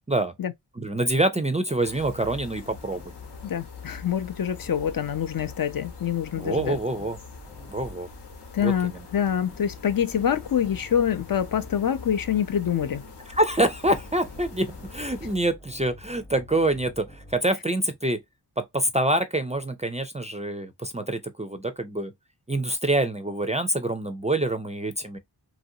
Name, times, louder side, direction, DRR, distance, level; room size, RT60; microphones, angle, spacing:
voice 1, 0.8-3.1 6.4-7.2 7.7-8.1 8.6-9.0 13.3-18.2 18.6-22.1 22.5-25.2, right 1 dB, 20° right, 0.3 m, -26 dB
sound 1, 1.8-15.4, left 4 dB, 80° left, 1.0 m, -43 dB
sound 2, 2.6-5.3 7.4-8.2 9.0-12.0 13.7-17.6, left 1 dB, 10° left, 0.7 m, -49 dB
voice 2, 3.4-6.8 8.5-13.0, left 9 dB, 55° left, 0.5 m, -26 dB
3.0 x 2.5 x 2.7 m
wide cardioid pair, 95°, 41 cm